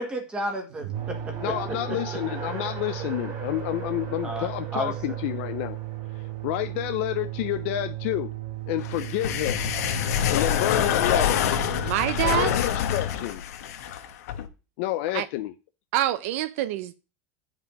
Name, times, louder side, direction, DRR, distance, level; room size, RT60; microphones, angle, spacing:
voice 1, 0.0-1.5 1.9-2.0 4.2-4.9, equal, 10° right, 1.5 m, -32 dB
sound 1, 0.7-12.6, right 13 dB, 80° right, 1.7 m, -36 dB
Race car auto racing, 0.9-10.0, right 6 dB, 35° right, 2.1 m, -42 dB
voice 2, 1.4-5.8 6.4-8.3 8.7-9.6 10.1-11.4 12.2-13.4 14.8-15.5, left 15 dB, 50° left, 0.5 m, -29 dB
sound 2, 8.8-14.5, left 10 dB, 90° left, 1.2 m, -26 dB
voice 3, 11.8-12.5 15.1-15.3 15.9-17.0, right 13 dB, 60° right, 0.5 m, -26 dB
9.2 x 5.2 x 5.2 m
supercardioid pair, 175°, 8 cm